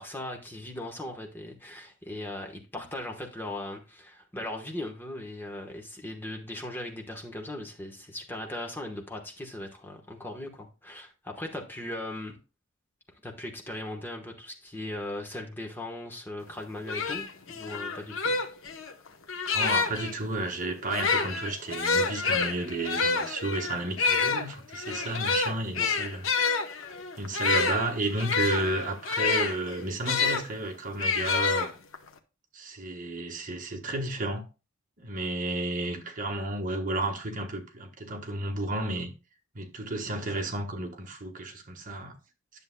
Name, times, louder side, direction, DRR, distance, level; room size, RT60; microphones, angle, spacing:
voice 1, 0.0-12.4 13.2-18.4 25.8-26.0, left 1 dB, 10° left, 1.1 m, -38 dB
sound 1, 16.5-16.6 16.9-20.1 20.8-30.4 31.0-32.1, left 4 dB, 80° left, 0.9 m, -28 dB
voice 2, 19.5-26.2 27.2-31.7 32.5-34.4 35.0-39.1 39.5-42.1, right 2 dB, 40° right, 1.3 m, -32 dB
10.5 x 7.0 x 2.2 m
head